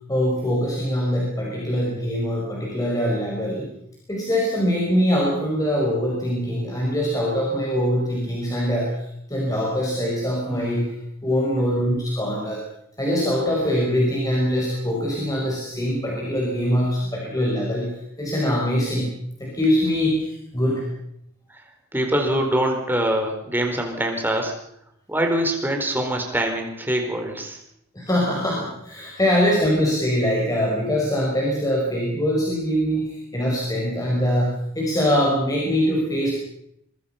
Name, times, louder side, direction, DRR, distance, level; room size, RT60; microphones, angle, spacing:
voice 1, 0.1-3.7 4.1-8.9 9.3-10.9 11.2-12.6 13.0-17.9 18.2-19.1 19.4-20.9 28.0-36.3, equal, 15° left, -3 dB, 5.3 m, -23 dB
voice 2, 21.9-24.5 25.1-27.6, right 1 dB, 10° right, 3 dB, 4.3 m, -24 dB
26.0 x 22.5 x 5.8 m, 0.73 s
head